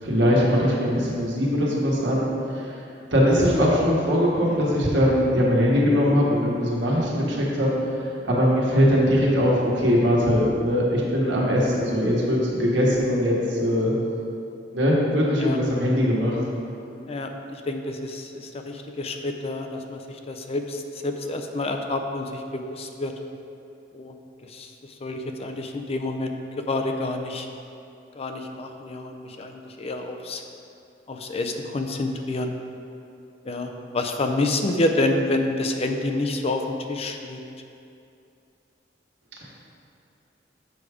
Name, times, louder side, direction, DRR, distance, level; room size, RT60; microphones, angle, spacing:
voice 1, 0.0-2.3 3.1-7.7 8.2-13.9 14.7-16.4, equal, 75° right, -4 dB, 1.5 m, -21 dB
voice 2, 17.1-23.1 23.9-24.1 24.4-26.3 26.7-27.5 28.2-30.4 31.1-32.5 33.5-37.4, left 2 dB, 35° left, 4 dB, 0.4 m, -28 dB
6.9 x 5.0 x 4.9 m, 2.6 s
head